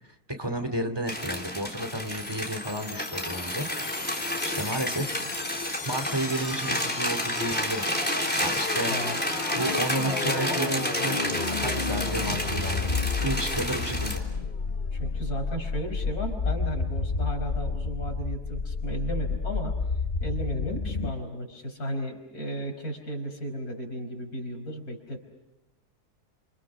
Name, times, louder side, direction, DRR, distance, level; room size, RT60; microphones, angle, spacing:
voice 1, 0.3-3.7 4.4-5.2 5.8-7.9 8.3-9.1 9.6-11.3 11.6-12.9 13.2-14.2, right 1 dB, 15° right, 6 dB, 2.8 m, -32 dB
sound 1, 1.1-14.2, left 1 dB, 5° left, 3.5 m, -30 dB
sound 2, 2.1-21.1, left 4 dB, 40° left, 1.0 m, -32 dB
voice 2, 8.9-9.2 10.0-10.9 14.9-19.8 20.2-25.2, right 1 dB, 70° left, 3 dB, 5.5 m, -34 dB
30.0 x 28.0 x 6.2 m, 0.95 s
omnidirectional pair, 1.6 m